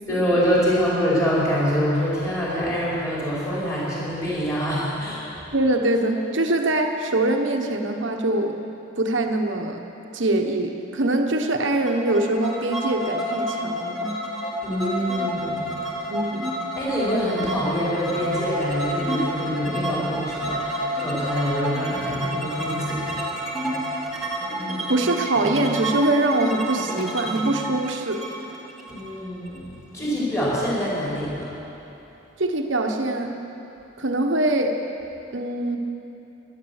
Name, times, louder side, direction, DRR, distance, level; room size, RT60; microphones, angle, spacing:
voice 1, 0.1-5.3 14.6-15.7 16.8-23.2 28.9-31.5, equal, 15° left, -8 dB, 4.9 m, -25 dB
voice 2, 5.5-8.6 9.0-9.8 10.1-14.1 16.1-16.6 24.9-28.3 32.4-33.3 34.0-34.8 35.3-35.8, right 2 dB, 70° right, 4 dB, 1.3 m, -23 dB
sound 1, 11.9-29.6, equal, ahead, 1.8 m, -29 dB
17.0 x 11.5 x 7.3 m, 3.0 s
head